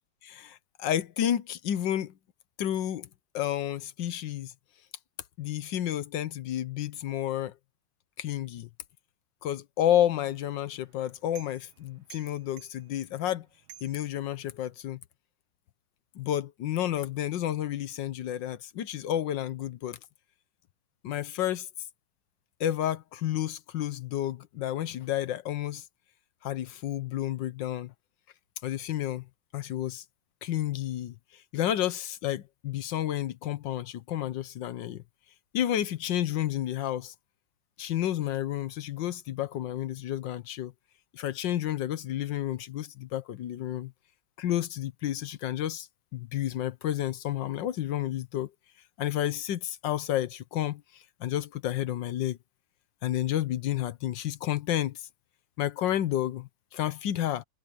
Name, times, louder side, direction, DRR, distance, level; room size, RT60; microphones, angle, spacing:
voice 1, 0.2-2.1 2.6-3.1 3.3-4.5 5.4-7.5 8.2-8.7 9.4-13.5 13.8-15.0 16.1-20.0 21.0-21.7 22.6-25.8 26.4-27.9 28.6-29.2 29.5-30.0 30.4-31.1 31.5-35.0 35.5-37.1 37.8-40.7 41.1-43.9 44.4-45.9 46.1-48.5 49.0-50.8 51.2-52.4 53.0-55.1 55.6-57.4, left 11 dB, 70° left, 1.4 m, -30 dB
sound 1, 10.1-14.8, right 11 dB, 80° right, 2.0 m, -55 dB
omnidirectional pair, 2.2 m